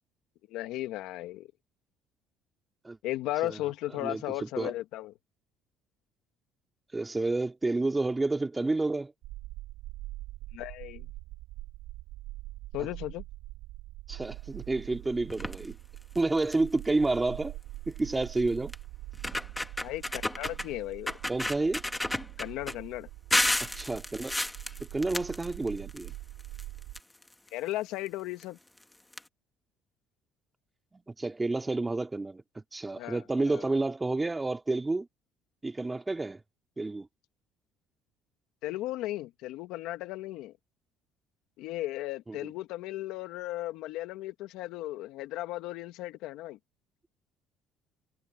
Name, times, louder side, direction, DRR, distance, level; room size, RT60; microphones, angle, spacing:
voice 1, 0.5-1.5 3.0-5.1 10.5-11.1 12.7-13.2 19.8-21.1 22.4-23.1 27.5-28.6 33.0-33.7 38.6-40.5 41.6-46.6, left 16 dB, 75° left, 2.0 m, -36 dB
voice 2, 4.0-4.7 6.9-9.1 14.1-15.8 16.1-17.6 17.9-18.7 21.3-21.8 23.6-24.4 24.9-26.1 30.9-35.1 35.6-36.4 36.8-37.1 42.3-42.5, right 2 dB, 15° right, 3.2 m, -30 dB
sound 1, 9.2-27.0, right 18 dB, 75° right, 7.5 m, -44 dB
sound 2, 15.3-15.7 16.2-16.3 16.5-16.8 18.0-18.1 18.7-18.8 19.1-20.7 21.1-22.7 23.3-26.1 26.4-27.5 28.4-28.5 28.8-28.9 29.1-29.2, left 1 dB, 10° left, 1.8 m, -31 dB
cardioid pair, 100°, 0 cm